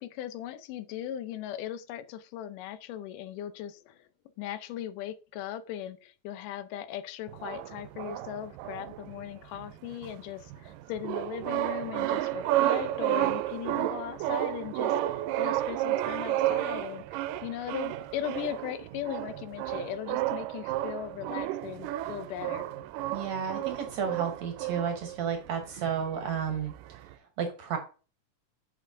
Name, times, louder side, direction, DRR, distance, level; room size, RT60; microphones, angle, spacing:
voice 1, 0.0-4.1 4.4-22.7, left 11 dB, 80° left, 2.2 m, -38 dB
sound 1, 7.3-27.1, right 14 dB, 85° right, 2.2 m, -32 dB
voice 2, 23.1-26.7 27.0-27.1 27.4-27.8, right 7 dB, 65° right, 2.1 m, -32 dB
7.9 x 6.7 x 2.5 m
omnidirectional pair, 3.9 m